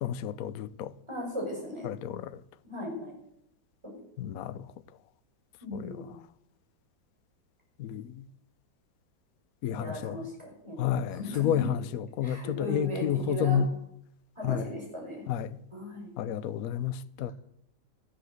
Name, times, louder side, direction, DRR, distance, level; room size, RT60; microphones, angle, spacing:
voice 1, 0.0-0.9 1.8-2.4 4.2-4.7 5.7-6.1 7.8-8.2 9.6-10.3 10.8-13.7 14.4-14.7 15.3-15.6 16.2-17.3, left 9 dB, 65° left, 1.0 m, -31 dB
voice 2, 1.1-1.9 2.6-3.1 5.6-6.1 9.7-11.6 12.2-13.6 14.4-15.2 15.7-16.1, left 1 dB, 15° right, 6.2 m, -37 dB
14.0 x 10.5 x 8.0 m
omnidirectional pair, 2.1 m